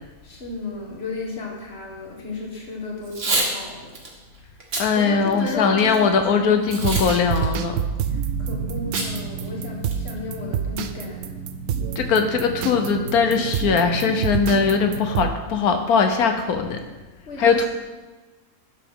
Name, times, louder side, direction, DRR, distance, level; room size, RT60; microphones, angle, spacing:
voice 1, 0.2-3.9 4.7-5.9 6.3-6.6 8.4-11.4 17.3-17.7, left 3 dB, 45° left, -1 dB, 1.8 m, -34 dB
Packing tape duct tape / Tearing, 3.0-3.5 3.9-4.1 4.6-4.9 5.4-6.0 6.7-7.1 7.4-7.5 8.9-9.1 9.4-9.5 9.8-10.2, right 2 dB, 55° right, 1.8 m, -25 dB
voice 2, 4.8-7.7 12.0-16.8 17.4-17.7, left 5 dB, 85° left, 6 dB, 1.4 m, -20 dB
sound 1, 6.7-15.3, right 7 dB, 80° right, 1.0 m, -28 dB
11.0 x 7.0 x 3.7 m, 1.3 s
omnidirectional pair, 1.5 m